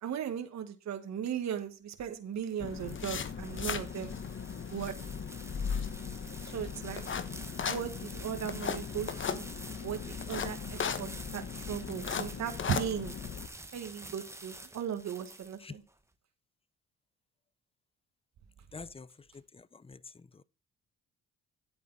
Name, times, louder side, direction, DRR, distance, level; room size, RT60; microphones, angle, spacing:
voice 1, 0.0-4.1 4.7-4.9 6.5-7.0 7.6-9.5 9.8-10.0 10.3-13.1 13.7-15.8, right 9 dB, 65° right, 1.7 m, -37 dB
sound 1, 2.1-15.9, right 2 dB, 10° right, 1.3 m, -49 dB
sound 2, 2.6-13.5, left 6 dB, 40° left, 1.1 m, -37 dB
voice 2, 18.7-19.1 19.3-20.3, left 4 dB, 20° left, 0.6 m, -47 dB
10.5 x 8.6 x 4.1 m
cardioid pair, 90°, 30 cm